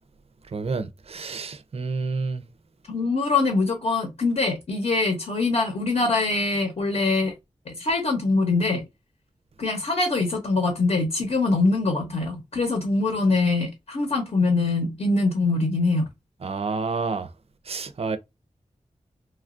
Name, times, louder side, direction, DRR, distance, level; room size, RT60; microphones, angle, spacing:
voice 1, 0.5-2.4 16.4-17.3 17.7-18.2, right 4 dB, 55° right, 0.4 m, -29 dB
voice 2, 2.9-7.3 7.7-8.8 9.6-16.1, left 3 dB, 60° left, 0.9 m, -23 dB
3.1 x 2.3 x 2.4 m
wide cardioid pair, 80°, 13 cm